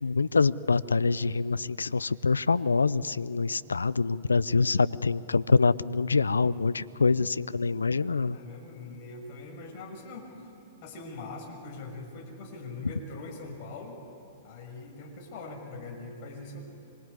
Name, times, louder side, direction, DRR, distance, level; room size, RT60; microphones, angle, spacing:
voice 1, 0.0-8.4, left 4 dB, 85° left, 18 dB, 0.5 m, -25 dB
voice 2, 8.0-10.5 10.8-14.1 14.4-16.6, left 3 dB, 50° left, 0 dB, 6.2 m, -42 dB
25.5 x 23.5 x 9.9 m, 2.7 s
hypercardioid pair, 110°, 0 cm